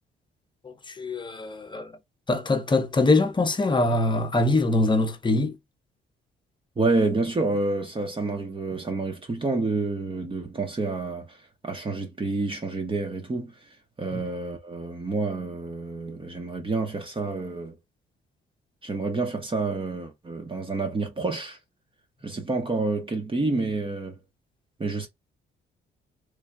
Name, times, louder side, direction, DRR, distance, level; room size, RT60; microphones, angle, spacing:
voice 1, 0.6-1.9 2.3-5.5 14.1-14.2, left 2 dB, 25° left, 0.8 m, -23 dB
voice 2, 6.8-17.8 18.8-21.6 22.2-24.2 24.8-25.1, right 3 dB, 25° right, 0.9 m, -28 dB
3.3 x 2.3 x 3.5 m
cardioid pair, 90°, 20 cm